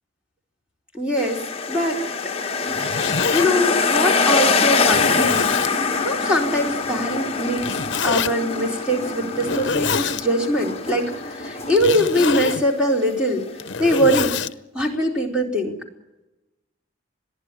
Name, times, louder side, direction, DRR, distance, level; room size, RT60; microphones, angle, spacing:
voice 1, 0.9-2.0 2.7-2.8 3.3-7.6 8.0-13.5 13.8-14.4 14.7-15.8, equal, 5° right, 0 dB, 4.2 m, -22 dB
sound 1, 1.2-14.3, left 4 dB, 30° left, 1.2 m, -24 dB
Zipper (clothing), 2.5-3.5 4.2-4.3 4.9-5.7 7.6-8.3 9.3-10.2 11.7-12.6 13.4-14.5, left 6 dB, 60° left, 0.8 m, -26 dB
sound 2, 4.4-12.2, equal, 15° left, 4.7 m, -34 dB
22.0 x 15.0 x 9.9 m, 0.96 s
head